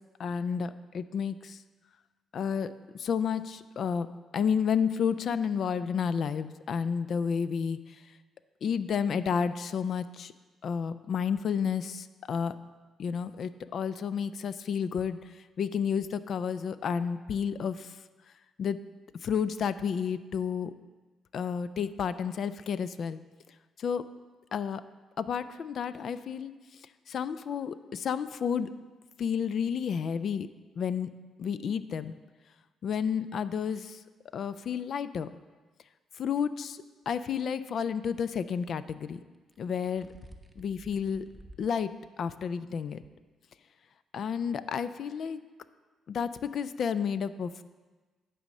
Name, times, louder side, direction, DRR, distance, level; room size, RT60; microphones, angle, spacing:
voice 1, 0.2-1.6 2.3-4.1 4.3-8.0 8.6-10.3 10.6-12.6 13.0-18.0 18.6-18.8 19.2-20.7 21.3-23.2 23.8-24.0 24.5-24.8 25.2-26.8 27.1-28.7 29.2-30.5 30.8-31.1 31.4-32.2 32.8-34.0 34.3-35.3 36.2-39.2 39.6-40.1 40.6-41.3 41.6-41.9 42.2-43.0 44.1-45.4 46.1-47.6, left 7 dB, 60° left, 14 dB, 0.3 m, -31 dB
sound 1, 37.1-37.4 39.3-41.7 42.2-42.3 43.0-43.1, right 1 dB, 5° right, 0.7 m, -52 dB
10.0 x 4.2 x 6.4 m, 1.3 s
cardioid pair, 90°, 0 cm